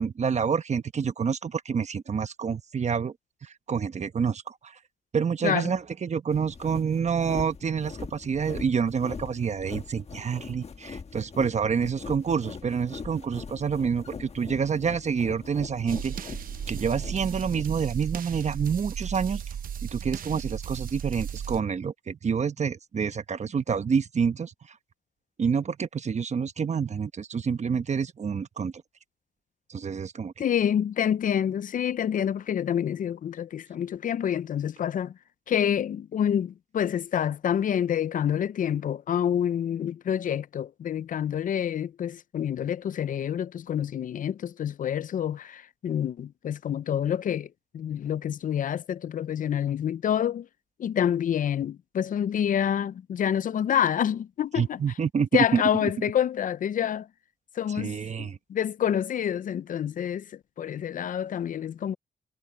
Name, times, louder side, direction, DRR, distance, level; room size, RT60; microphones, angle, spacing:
voice 1, 0.0-3.1 3.4-4.7 5.1-16.3 16.7-19.4 19.9-24.5 25.4-28.7 29.7-30.5 54.6-55.6 57.7-58.4, right 6 dB, 50° right, 1.1 m, -28 dB
sound 1, 6.3-17.7, left 5 dB, 45° left, 1.4 m, -42 dB
sound 2, 15.9-21.6, right 8 dB, 75° right, 0.8 m, -35 dB
voice 2, 30.4-35.2 35.5-47.5 47.7-50.5 50.8-54.8 55.3-57.1 57.6-62.0, left 9 dB, 65° left, 0.5 m, -27 dB
cardioid pair, 80°, 15 cm